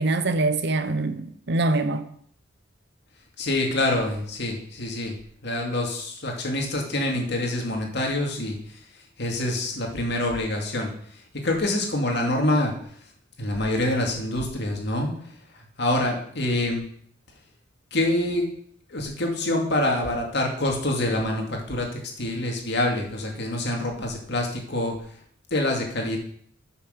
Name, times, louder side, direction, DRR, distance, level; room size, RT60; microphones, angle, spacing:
voice 1, 0.0-2.1, right 2 dB, 60° right, 0.8 m, -24 dB
voice 2, 3.4-5.2 5.4-8.6 9.2-10.9 11.4-12.7 13.4-15.1 15.8-16.8 17.9-18.5 18.9-24.9 25.5-26.2, left 1 dB, 60° left, 2.3 m, -26 dB
8.4 x 6.2 x 6.6 m
head